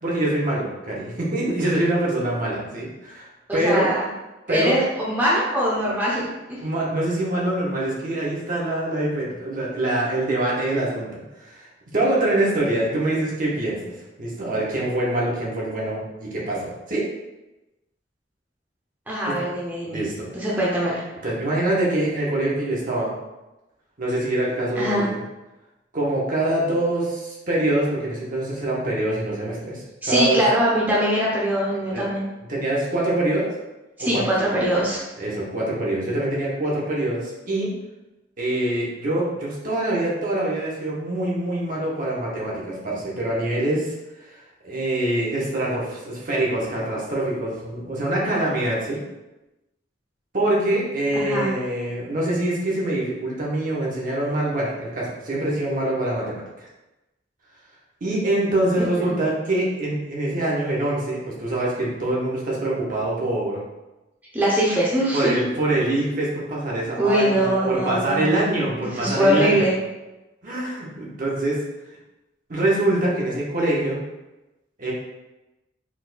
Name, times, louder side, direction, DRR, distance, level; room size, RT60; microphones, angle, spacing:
voice 1, 0.0-3.9 4.5-4.7 6.6-13.9 14.2-17.1 19.3-19.4 19.9-20.3 21.2-23.1 24.0-25.2 25.9-30.4 31.9-32.1 32.5-33.5 34.0-34.5 35.2-37.7 38.4-43.9 44.2-44.3 44.6-49.0 50.3-56.7 58.0-63.6 65.1-69.7 70.4-71.6 72.5-74.0 74.8-74.9, right 1 dB, 45° right, -5 dB, 1.1 m, -24 dB
voice 2, 3.5-4.0 4.5-6.3 19.1-20.0 20.3-21.0 24.8-25.0 30.0-32.2 34.0-35.0 51.2-51.5 59.0-59.1 64.3-65.3 67.0-68.4 68.8-69.7, equal, 10° right, -6 dB, 0.7 m, -22 dB
4.4 x 4.2 x 2.3 m, 1.0 s
head